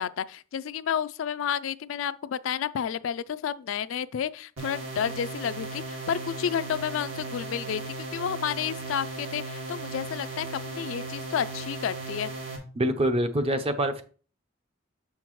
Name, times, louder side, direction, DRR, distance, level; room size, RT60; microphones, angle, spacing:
voice 1, 0.0-12.3, left 8 dB, 65° left, 0.3 m, -31 dB
sound 1, 4.6-12.6, right 2 dB, 70° right, 2.1 m, -37 dB
voice 2, 12.8-14.0, right 1 dB, 30° right, 0.6 m, -25 dB
6.9 x 5.8 x 3.1 m
head